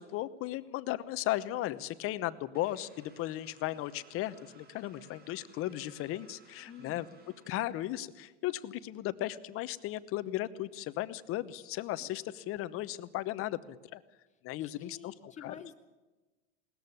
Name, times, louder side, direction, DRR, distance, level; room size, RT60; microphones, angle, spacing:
voice 1, 0.0-7.1 7.5-14.0 14.4-15.1 15.4-15.5, left 15 dB, 35° left, 14 dB, 1.0 m, -36 dB
sound 1, 2.5-8.1, right 3 dB, 25° right, 3.9 m, -60 dB
voice 2, 6.7-7.1 12.0-12.1 14.3-15.7, left 6 dB, 20° left, 6 dB, 2.1 m, -50 dB
19.0 x 14.0 x 9.7 m, 1.2 s
hypercardioid pair, 120°, 37 cm